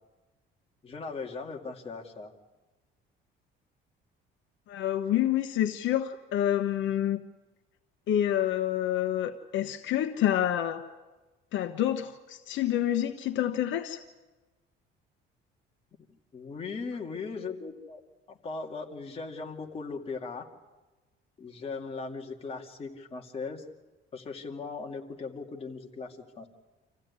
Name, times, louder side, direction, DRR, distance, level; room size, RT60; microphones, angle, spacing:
voice 1, 0.8-2.3 16.3-18.0 18.3-20.5 21.4-23.6 24.1-26.5, left 4 dB, 30° left, 1 dB, 2.3 m, -38 dB
voice 2, 4.7-7.2 8.1-10.8 11.5-14.0, left 11 dB, 70° left, 7 dB, 1.1 m, -28 dB
26.5 x 15.5 x 9.7 m, 1.2 s
cardioid pair, 145°, 20 cm